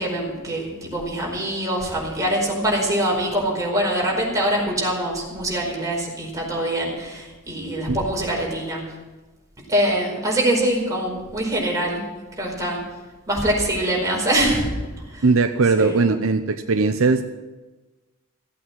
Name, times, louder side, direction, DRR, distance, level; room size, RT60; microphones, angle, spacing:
voice 1, 0.0-8.8 9.7-12.0 12.4-12.8 13.3-14.7 15.1-15.2 15.8-16.0, right 1 dB, 15° right, -2 dB, 4.8 m, -24 dB
voice 2, 15.2-17.2, right 3 dB, 70° right, 8 dB, 0.7 m, -19 dB
16.0 x 8.5 x 7.5 m, 1.2 s
head